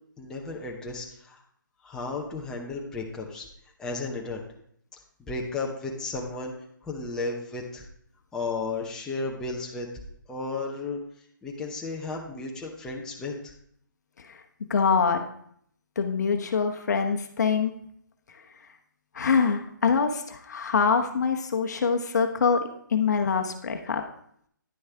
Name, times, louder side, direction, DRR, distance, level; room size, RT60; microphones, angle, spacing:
voice 1, 0.2-1.4 1.8-3.5 3.8-4.4 5.2-6.5 6.8-7.9 8.3-9.9 10.3-11.0 11.4-13.5, left 3 dB, 5° left, -1 dB, 0.7 m, -33 dB
voice 2, 14.3-15.3 16.0-17.7 19.1-24.0, left 5 dB, 55° left, 5 dB, 0.9 m, -25 dB
9.8 x 6.3 x 3.4 m, 0.66 s
hypercardioid pair, 155°, 11 cm